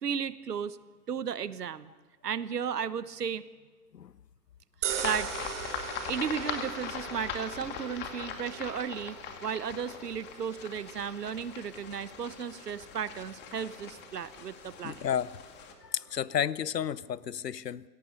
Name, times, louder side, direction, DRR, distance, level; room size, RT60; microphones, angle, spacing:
voice 1, 0.0-0.8 1.1-1.9 2.2-3.4 4.8-5.3 6.1-15.1, right 7 dB, 70° right, 16 dB, 1.3 m, -34 dB
sound 1, 4.8-17.2, right 11 dB, 45° right, 1.1 m, -43 dB
sound 2, 4.9-15.7, left 7 dB, 20° left, 2.3 m, -41 dB
voice 2, 14.8-15.3 15.8-17.8, left 9 dB, 75° left, 20 dB, 0.9 m, -32 dB
28.5 x 17.5 x 6.7 m, 1.3 s
figure-of-eight pair, 130°, 49 cm